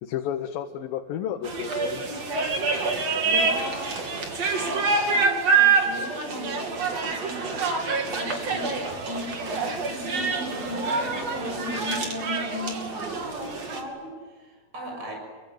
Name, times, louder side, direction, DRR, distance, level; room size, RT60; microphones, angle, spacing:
voice 1, 0.0-2.0, left 9 dB, 85° left, 6 dB, 2.9 m, -31 dB
sound 1, 1.4-13.8, right 4 dB, 50° right, 3.9 m, -26 dB
voice 2, 3.2-4.0 4.7-7.6 8.1-15.1, equal, 30° right, 1 dB, 7.4 m, -36 dB
27.0 x 24.0 x 9.2 m, 1.5 s
omnidirectional pair, 4.0 m